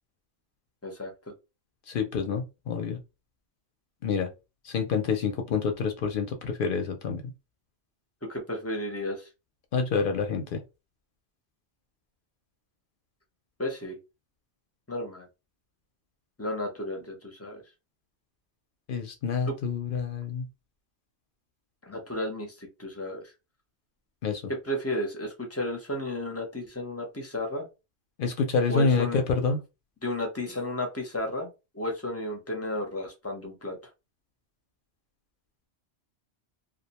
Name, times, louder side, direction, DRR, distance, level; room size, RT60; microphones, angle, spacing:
voice 1, 1.9-3.0 4.0-4.3 4.6-7.2 9.7-10.6 18.9-20.4 24.2-24.4 28.2-29.6, left 5 dB, 60° left, 4 dB, 0.6 m, -27 dB
voice 2, 8.3-9.3 13.6-14.0 14.9-15.3 16.4-17.6 19.5-19.6 21.9-23.2 24.6-27.7 28.7-29.2 30.0-31.5 31.7-33.8, left 1 dB, 20° left, 2 dB, 0.5 m, -33 dB
2.4 x 2.1 x 2.8 m, 0.26 s
omnidirectional pair, 1.1 m